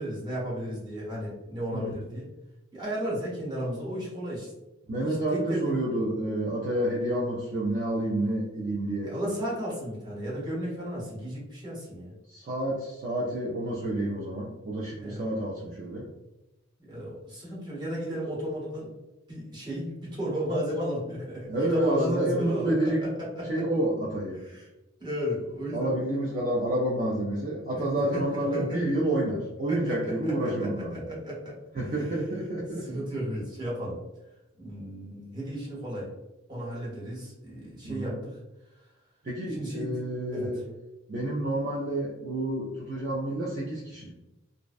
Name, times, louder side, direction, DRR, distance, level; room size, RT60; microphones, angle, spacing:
voice 1, 0.0-2.3 2.7-4.5 5.0-5.8 9.0-12.1 15.0-15.3 16.9-18.9 19.3-22.7 23.4-23.6 24.4-24.7 25.0-25.9 27.8-28.8 29.7-31.5 31.9-32.1 32.8-34.0 34.6-36.1 36.5-38.4 39.5-40.0 40.3-40.5, equal, 20° right, -6 dB, 0.9 m, -34 dB
voice 2, 4.9-9.1 12.3-16.1 21.5-23.1 23.5-24.4 25.7-31.1 31.7-33.0 37.8-38.2 39.2-40.7 41.1-44.1, right 1 dB, 40° right, -4 dB, 0.4 m, -29 dB
2.5 x 2.1 x 2.3 m, 0.97 s
head